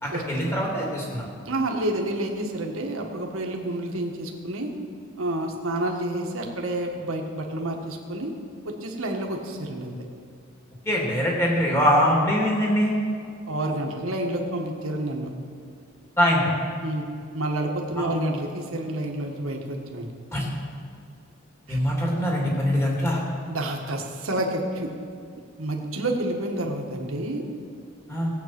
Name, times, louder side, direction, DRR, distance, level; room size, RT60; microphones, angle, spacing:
voice 1, 0.0-1.3 10.8-13.0 16.2-16.5 18.0-18.1 20.3-20.5 21.7-23.2 28.1-28.3, equal, 10° left, -3 dB, 2.6 m, -23 dB
voice 2, 1.5-4.7 5.2-8.3 8.6-9.9 13.5-15.3 16.8-17.1 17.3-20.1 21.7-21.8 23.5-24.9 25.6-27.4, right 1 dB, 80° right, 1 dB, 1.6 m, -29 dB
17.0 x 8.4 x 6.0 m, 2.3 s
head